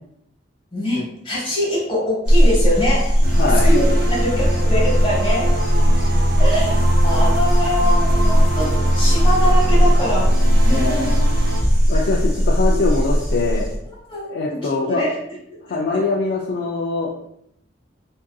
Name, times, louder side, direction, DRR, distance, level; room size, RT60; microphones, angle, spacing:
voice 1, 0.7-3.1 3.6-5.5 6.4-8.7 8.9-10.3 10.6-11.1 11.9-12.0 12.7-12.9 14.1-15.1 15.5-15.8, equal, 30° left, -5 dB, 1.0 m, -23 dB
sound 1, 2.2-13.8, equal, 5° right, 0.7 m, -17 dB
voice 2, 3.2-3.7 7.6-7.7 10.7-11.3 11.9-13.7 14.2-15.0 15.7-17.1, left 3 dB, 60° left, -2 dB, 0.3 m, -23 dB
sound 2, 3.2-11.6, right 1 dB, 55° right, 0.5 m, -25 dB
2.6 x 2.5 x 2.2 m, 0.74 s
head